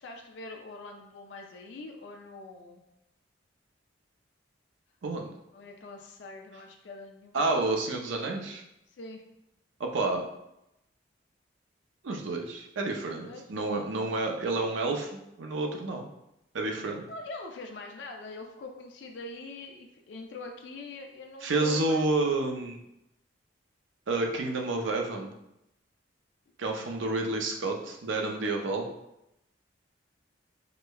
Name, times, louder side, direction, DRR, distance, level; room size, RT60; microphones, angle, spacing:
voice 1, 0.0-2.8 5.5-7.5 9.0-9.2 13.1-13.5 17.1-22.0, left 3 dB, 70° left, 2 dB, 0.4 m, -43 dB
voice 2, 7.3-8.6 9.8-10.2 12.0-16.1 16.5-17.0 21.4-22.8 24.1-25.3 26.6-28.9, right 2 dB, 80° right, 2 dB, 0.5 m, -29 dB
4.9 x 2.1 x 2.3 m, 0.85 s
head